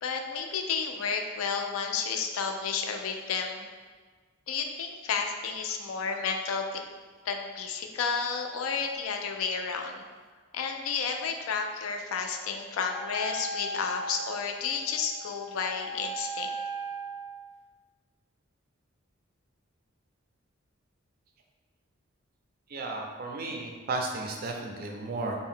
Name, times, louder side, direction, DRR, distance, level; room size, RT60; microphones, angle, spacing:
voice 1, 0.0-3.7 4.5-6.8 7.2-10.0 10.5-16.5, left 5 dB, 75° left, 3 dB, 0.3 m, -31 dB
Wind instrument woodwind instrument, 12.9-17.4, right 2 dB, 10° right, 0.7 m, -38 dB
voice 2, 22.7-25.4, right 3 dB, 45° right, 1 dB, 0.3 m, -34 dB
2.6 x 2.1 x 3.6 m, 1.5 s
head